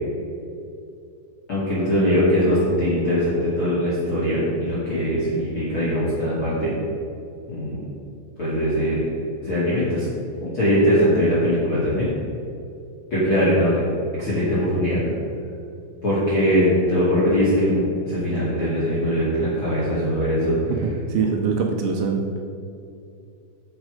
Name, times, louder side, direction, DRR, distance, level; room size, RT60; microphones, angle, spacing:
voice 1, 1.5-6.7 7.5-7.8 8.4-9.0 9.4-10.1 10.4-12.1 13.1-13.8 14.2-15.0 16.0-20.6 21.2-21.3, equal, 45° left, -9 dB, 1.8 m, -21 dB
voice 2, 20.7-22.3, right 5 dB, 80° right, 2 dB, 3.0 m, -23 dB
9.7 x 6.4 x 5.0 m, 2.6 s
omnidirectional pair, 5.9 m